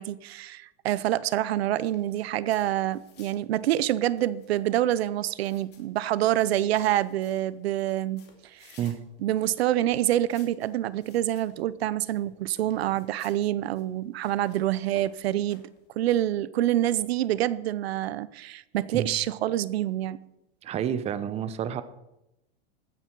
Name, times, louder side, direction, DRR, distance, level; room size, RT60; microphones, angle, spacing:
voice 1, 0.0-8.2 8.5-8.8 9.2-15.6 16.0-20.2, right 13 dB, 80° right, 0.7 m, -26 dB
sound 1, 1.6-15.9, left 6 dB, 35° left, 2.6 m, -59 dB
voice 2, 20.6-21.8, right 9 dB, 20° right, 0.7 m, -29 dB
15.5 x 9.8 x 4.6 m
supercardioid pair, 140°, 30 cm